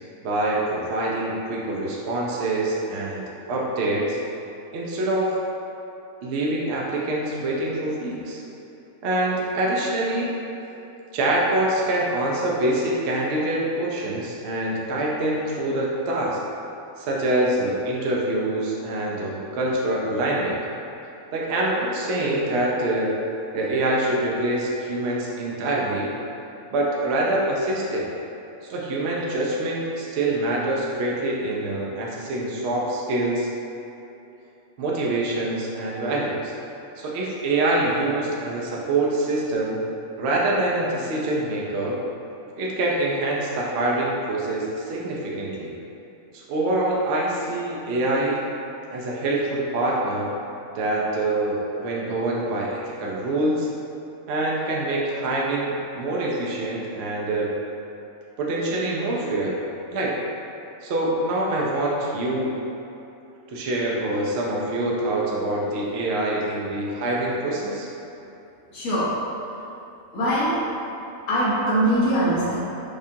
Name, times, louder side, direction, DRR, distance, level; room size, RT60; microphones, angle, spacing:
voice 1, 0.2-4.2 4.7-5.3 6.2-8.4 9.0-10.4 11.1-16.4 17.0-20.6 21.3-23.1 23.5-26.1 26.7-28.1 28.7-33.5 34.8-36.5 37.0-39.8 40.2-42.0 42.6-45.7 46.3-48.4 48.9-50.3 50.7-53.7 54.3-57.5 58.4-59.6 59.9-60.2 60.8-62.6 63.5-67.9, right 1 dB, 60° right, -4 dB, 0.8 m, -25 dB
voice 2, 68.7-69.2 70.1-70.6 71.3-72.6, right 1 dB, 75° left, -8 dB, 1.2 m, -22 dB
5.0 x 2.4 x 2.7 m, 2.9 s
omnidirectional pair, 1.4 m